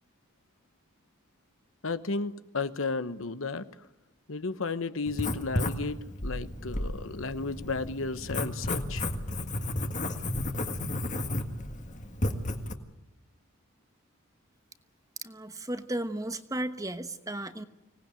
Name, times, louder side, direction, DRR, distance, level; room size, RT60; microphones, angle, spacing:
voice 1, 1.8-3.7 4.3-9.0, left 3 dB, 65° left, 12 dB, 1.0 m, -33 dB
Writing, 5.1-12.7, left 1 dB, 35° left, 1.7 m, -33 dB
voice 2, 15.2-17.6, right 1 dB, 15° right, 10 dB, 1.1 m, -34 dB
25.0 x 18.5 x 9.1 m, 0.93 s
head